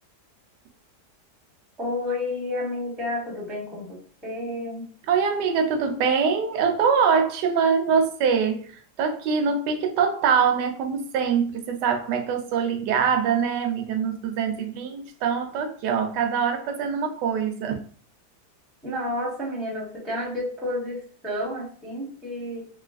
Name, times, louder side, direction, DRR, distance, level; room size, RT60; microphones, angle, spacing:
voice 1, 1.8-4.9 18.8-22.7, left 1 dB, ahead, 0.4 m, -31 dB
voice 2, 5.1-8.7 9.0-17.8, right 6 dB, 85° right, 1.2 m, -23 dB
3.1 x 2.8 x 2.4 m
omnidirectional pair, 1.8 m